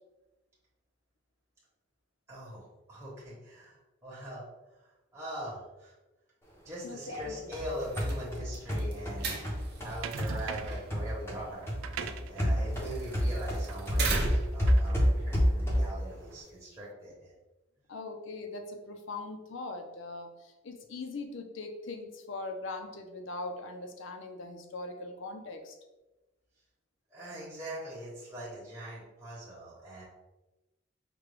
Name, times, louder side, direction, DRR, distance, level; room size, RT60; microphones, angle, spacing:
voice 1, 2.3-6.0 6.6-12.0 12.2-17.3 27.1-30.0, right 1 dB, 15° right, -8 dB, 1.0 m, -42 dB
voice 2, 6.8-7.3 17.9-25.8, left 2 dB, 65° left, 5 dB, 0.6 m, -41 dB
sound 1, 7.1-11.4 11.7-16.1, equal, 10° left, 0.6 m, -29 dB
sound 2, 7.7-14.7, right 3 dB, 50° right, 0.7 m, -39 dB
sound 3, 10.0-10.9 11.6-16.3, right 7 dB, 75° right, 0.3 m, -43 dB
5.0 x 2.3 x 3.3 m, 1.1 s
head